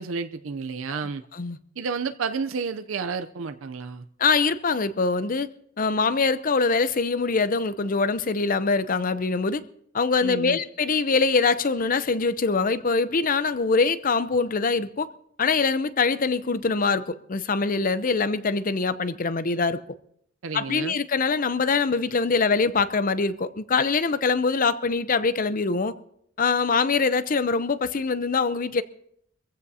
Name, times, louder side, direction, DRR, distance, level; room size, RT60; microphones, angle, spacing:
voice 1, 0.0-1.2 1.8-4.1 10.2-10.6 20.4-20.9, right 5 dB, 85° right, 0.6 m, -31 dB
voice 2, 4.2-5.5 5.8-9.6 9.9-15.1 15.4-19.8 20.5-25.9 26.4-28.8, left 4 dB, 45° left, 0.7 m, -23 dB
24.0 x 15.5 x 2.8 m
head